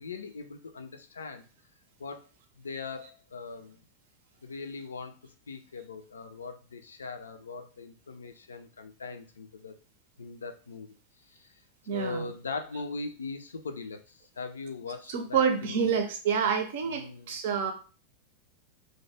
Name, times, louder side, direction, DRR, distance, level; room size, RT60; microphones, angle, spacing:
voice 1, 0.0-1.4 2.0-2.3 2.6-3.8 4.4-5.1 5.5-9.7 10.2-10.9 11.3-11.5 11.9-16.0 16.8-17.4, left 4 dB, 70° left, 7 dB, 0.4 m, -40 dB
voice 2, 11.9-12.3 15.1-17.7, right 6 dB, 55° right, 6 dB, 0.5 m, -28 dB
2.7 x 2.1 x 3.2 m, 0.38 s
figure-of-eight pair, 90°, 0 cm